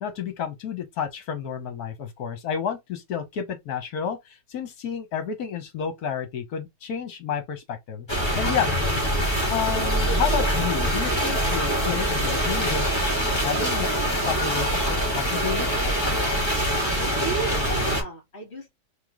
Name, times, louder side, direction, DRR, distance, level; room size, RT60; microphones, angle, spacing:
voice 1, 0.0-8.1 8.3-8.7 9.5-12.9 13.4-13.9 14.2-15.7, left 7 dB, 65° left, 1.5 m, -30 dB
sound 1, 8.1-18.0, equal, 15° left, 1.8 m, -24 dB
voice 2, 16.8-18.7, right 5 dB, 40° left, 2.2 m, -35 dB
3.7 x 3.1 x 3.6 m
omnidirectional pair, 1.8 m